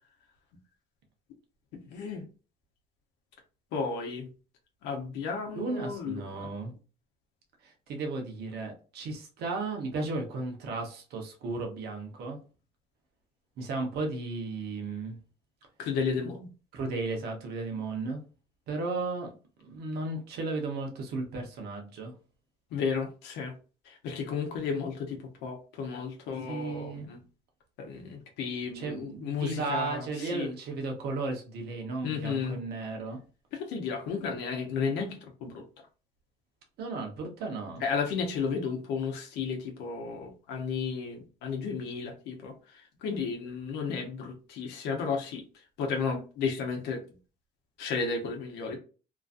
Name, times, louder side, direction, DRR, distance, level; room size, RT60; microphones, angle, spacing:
voice 1, 1.7-2.3 3.7-4.3 4.8-6.5 15.8-16.5 22.7-23.5 23.8-27.2 27.8-30.5 32.0-32.6 33.5-35.6 37.8-45.4 45.8-47.0 47.8-48.8, left 5 dB, 85° left, 2 dB, 0.8 m, -33 dB
voice 2, 5.5-6.7 7.6-12.4 13.6-15.2 16.7-18.2 18.7-19.3 19.6-22.1 26.5-27.1 28.7-33.2 36.8-37.8, right 3 dB, 70° right, 2 dB, 0.9 m, -35 dB
3.0 x 2.5 x 2.4 m, 0.35 s
cardioid pair, 110°, 17 cm